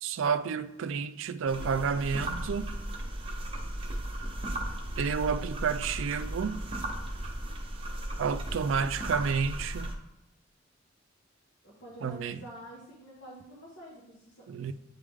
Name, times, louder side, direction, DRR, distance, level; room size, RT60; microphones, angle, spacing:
voice 1, 0.0-2.7 5.0-6.6 8.2-9.9 12.0-12.4 14.5-14.7, right 6 dB, 70° right, 0.4 m, -30 dB
sound 1, 1.5-10.0, right 1 dB, 30° right, 0.9 m, -36 dB
voice 2, 11.6-14.7, equal, 65° left, 1.4 m, -48 dB
9.0 x 3.3 x 3.5 m
head